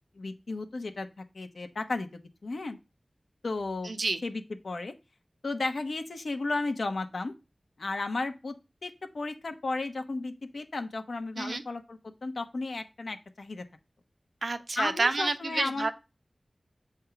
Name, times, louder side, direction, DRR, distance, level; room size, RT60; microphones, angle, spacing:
voice 1, 0.2-1.1 1.3-2.1 2.4-2.8 3.4-3.9 4.2-4.9 5.4-7.3 7.8-8.6 8.8-13.6 14.8-15.9, left 3 dB, 85° left, 7 dB, 0.9 m, -34 dB
voice 2, 3.8-4.2 11.4-11.6 14.4-15.9, right 3 dB, 75° right, 9 dB, 0.8 m, -29 dB
7.8 x 3.6 x 5.8 m, 0.27 s
cardioid pair, 40°, 0 cm